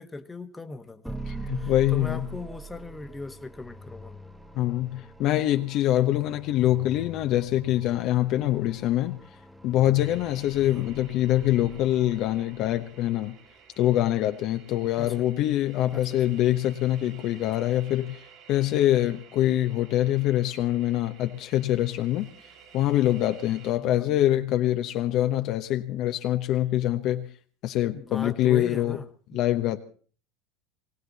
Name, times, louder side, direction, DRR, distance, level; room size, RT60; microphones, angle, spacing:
voice 1, 0.0-1.2 1.6-4.2 10.6-10.9 15.0-15.3 15.9-16.2 23.8-24.0 27.9-29.4, left 2 dB, 15° left, 9 dB, 1.3 m, -39 dB
sound 1, 1.0-13.2, right 2 dB, 5° right, 1.0 m, -43 dB
voice 2, 1.3-2.3 4.5-9.2 9.6-13.4 13.8-18.2 18.5-22.3 22.7-27.3 27.6-29.0 29.3-29.8, left 13 dB, 55° left, 7 dB, 1.0 m, -24 dB
sound 2, 10.0-23.7, right 7 dB, 60° right, 4.0 m, -53 dB
20.5 x 17.5 x 4.1 m, 0.42 s
hypercardioid pair, 80°, 0 cm